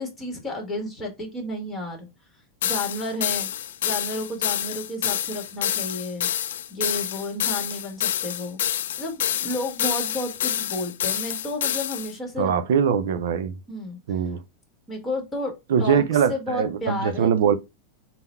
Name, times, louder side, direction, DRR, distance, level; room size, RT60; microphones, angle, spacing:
voice 1, 0.0-2.1 2.6-3.5 3.8-6.3 6.7-8.6 9.0-12.6 13.7-14.0 14.9-17.3, left 1 dB, 10° left, 1.3 m, -32 dB
sound 1, 2.6-12.1, left 10 dB, 85° left, 0.3 m, -27 dB
voice 2, 12.4-13.5 14.1-14.4 15.7-17.5, right 7 dB, 75° right, 0.4 m, -22 dB
3.8 x 2.1 x 4.2 m
supercardioid pair, 140°, 0 cm